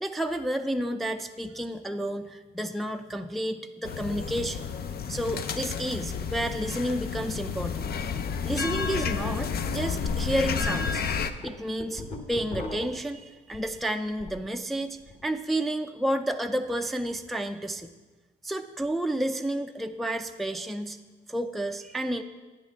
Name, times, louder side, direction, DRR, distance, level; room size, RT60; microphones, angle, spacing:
voice 1, 0.0-4.7 5.1-7.9 8.4-11.0 11.4-12.0 12.3-17.9 18.4-21.0 21.3-22.2, right 1 dB, ahead, 5 dB, 0.4 m, -31 dB
sound 1, 3.8-11.3, left 6 dB, 50° left, 0.6 m, -31 dB
sound 2, 11.4-14.5 14.8-15.3, left 2 dB, 30° left, 1.1 m, -40 dB
10.5 x 9.3 x 3.6 m, 1.3 s
cardioid pair, 90°, 20 cm